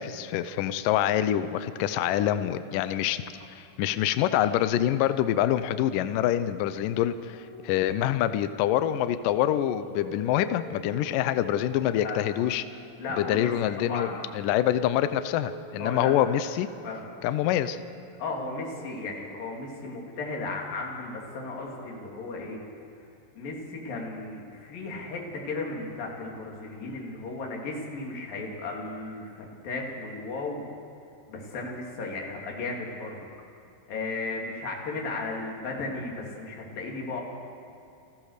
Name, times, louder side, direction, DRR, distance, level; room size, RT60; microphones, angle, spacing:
voice 1, 0.0-3.2 3.5-12.6 13.2-14.1 14.3-16.7 17.2-17.8, left 11 dB, 85° left, 12 dB, 1.9 m, -26 dB
sound 1, 7.3-8.4 9.3-13.4 14.4-17.2 18.6-19.0 20.9-22.6, right 1 dB, 35° right, 8.0 m, -47 dB
voice 2, 13.0-13.5 13.8-14.3 15.8-16.1 16.8-17.1 18.2-22.6 23.3-30.6 31.3-33.3 33.9-37.2, left 3 dB, 60° left, -1 dB, 4.5 m, -35 dB
29.5 x 15.5 x 6.6 m, 2.7 s
omnidirectional pair, 4.8 m